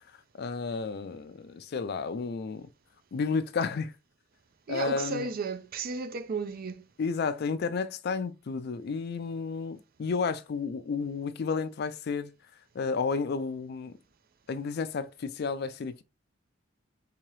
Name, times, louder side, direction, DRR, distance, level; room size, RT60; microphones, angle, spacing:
voice 1, 0.4-2.7 3.1-3.9 4.7-5.3 7.0-12.3 12.7-14.0 14.5-16.0, left 5 dB, 55° left, 0.4 m, -32 dB
voice 2, 4.7-6.9, right 4 dB, 50° right, 0.4 m, -34 dB
3.7 x 2.9 x 3.1 m
head